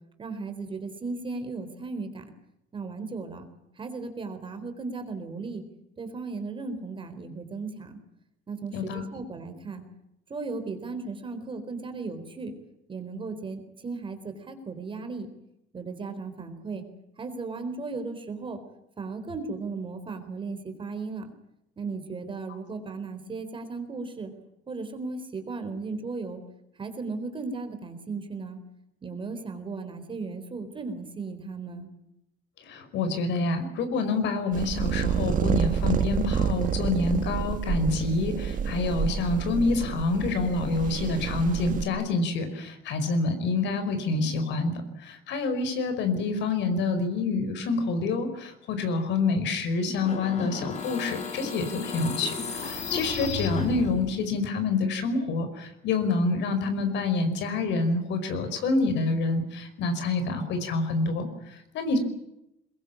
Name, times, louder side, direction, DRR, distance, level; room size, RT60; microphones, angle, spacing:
voice 1, 0.2-2.3 2.7-3.5 3.8-5.7 6.0-8.0 8.5-9.8 10.3-12.5 12.9-15.3 15.7-16.8 17.2-18.6 19.0-21.3 21.8-24.3 24.7-26.4 26.8-28.6 29.0-31.9, right 4 dB, 25° right, 8 dB, 4.1 m, -36 dB
voice 2, 8.7-9.0 32.6-44.7 45.0-62.0, left 3 dB, 65° left, 9 dB, 5.2 m, -27 dB
sound 1, 34.5-41.9, right 8 dB, 45° right, 1.9 m, -28 dB
sound 2, 50.0-54.2, left 5 dB, 35° left, 4.3 m, -34 dB
22.5 x 22.0 x 8.6 m, 0.84 s
cardioid pair, 135°, 20 cm